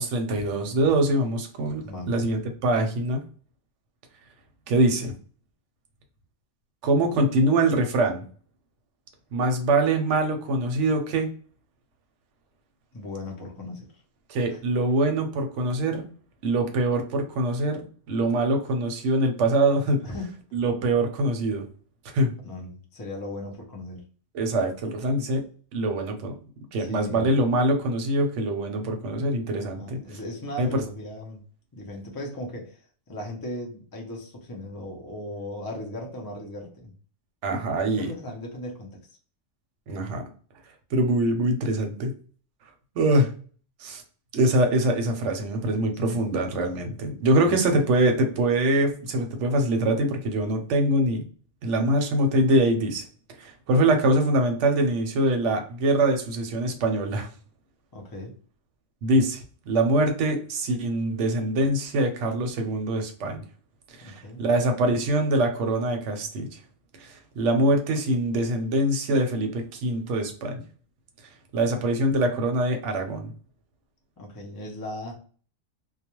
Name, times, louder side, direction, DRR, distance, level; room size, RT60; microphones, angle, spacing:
voice 1, 0.0-3.2 4.7-5.1 6.8-8.2 9.3-11.3 14.3-16.0 16.4-20.0 20.5-21.7 22.1-22.3 24.3-25.4 25.7-26.3 26.7-30.0 30.6-30.7 37.4-38.1 39.9-40.2 40.9-42.1 43.0-43.3 43.8-44.0 44.3-51.2 51.6-53.0 53.4-57.3 59.0-63.4 64.0-66.6 67.0-70.6 71.5-73.3, right 1 dB, 70° right, 4 dB, 0.9 m, -24 dB
voice 2, 12.9-13.9 14.5-14.6 20.0-20.4 22.4-24.0 26.8-27.3 29.6-31.4 31.7-32.8 33.1-36.9 37.8-39.0 46.0-46.2 47.4-47.6 57.9-58.3 64.0-64.4 74.2-75.1, left 1 dB, 35° left, 0 dB, 0.3 m, -37 dB
2.3 x 2.1 x 2.9 m, 0.42 s
omnidirectional pair, 1.4 m